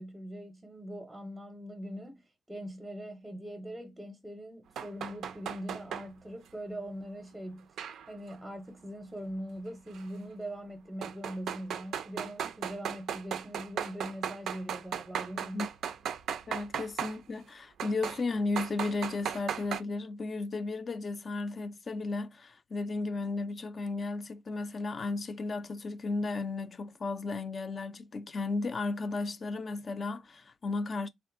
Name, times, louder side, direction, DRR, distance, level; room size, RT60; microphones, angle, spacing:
voice 1, 0.0-7.7 8.1-15.7, equal, 5° right, 0.6 m, -42 dB
sound 1, 4.8-6.1 7.8-8.3 9.9-10.0 11.0-17.2 17.8-18.2 18.5-19.8, right 8 dB, 70° right, 0.3 m, -36 dB
voice 2, 16.5-31.1, left 3 dB, 40° left, 0.4 m, -34 dB
3.4 x 2.4 x 2.5 m
cardioid pair, 90°, 0 cm